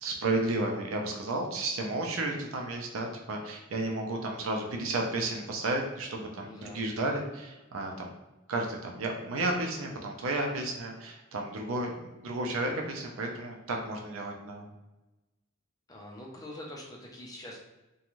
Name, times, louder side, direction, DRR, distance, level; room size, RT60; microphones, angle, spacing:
voice 1, 0.0-8.1 8.5-14.7, right 2 dB, 85° right, 1 dB, 0.5 m, -32 dB
voice 2, 6.4-6.8 15.9-17.6, left 1 dB, 20° left, -2 dB, 0.5 m, -44 dB
2.5 x 2.3 x 3.0 m, 1.0 s
head